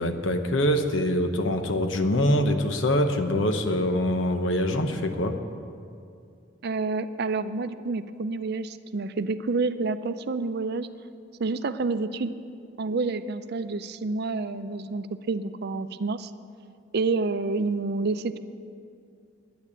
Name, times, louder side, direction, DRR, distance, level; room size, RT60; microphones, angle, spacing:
voice 1, 0.0-5.4, left 1 dB, 80° left, 6 dB, 1.0 m, -24 dB
voice 2, 6.6-10.9 11.4-12.3 12.8-16.3 16.9-18.4, right 3 dB, 55° right, 12 dB, 0.5 m, -28 dB
10.5 x 9.1 x 8.6 m, 2.4 s
head